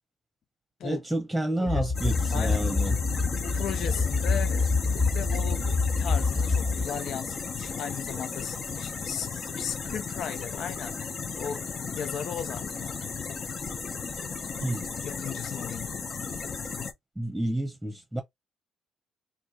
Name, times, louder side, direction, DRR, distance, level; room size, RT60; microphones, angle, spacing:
voice 1, 0.8-3.0 14.6-14.8 17.2-18.2, right 1 dB, 5° right, 1.2 m, -29 dB
voice 2, 1.6-2.6 3.4-11.0 11.4-11.6 11.9-13.1 15.0-15.9, left 8 dB, 70° left, 0.4 m, -37 dB
sound 1, 1.7-6.9, left 4 dB, 20° left, 0.7 m, -26 dB
sound 2, 1.9-16.9, left 5 dB, 45° left, 0.9 m, -35 dB
3.1 x 2.7 x 4.3 m
cardioid pair, 90°, 0 cm